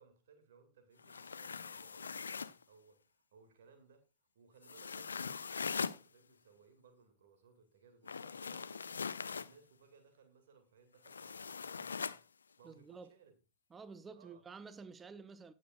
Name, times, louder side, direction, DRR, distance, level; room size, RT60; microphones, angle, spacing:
voice 1, 0.0-4.0 4.3-12.2 12.6-13.3 14.1-14.4, right 5 dB, 60° right, 2.2 m, -64 dB
sound 1, 1.0-2.6 4.6-6.0 8.0-9.5 11.0-12.2, left 5 dB, 75° left, 0.4 m, -41 dB
voice 2, 12.6-13.1 13.7-15.5, right 5 dB, 20° right, 0.6 m, -51 dB
17.5 x 6.5 x 2.4 m
figure-of-eight pair, 90°, 0 cm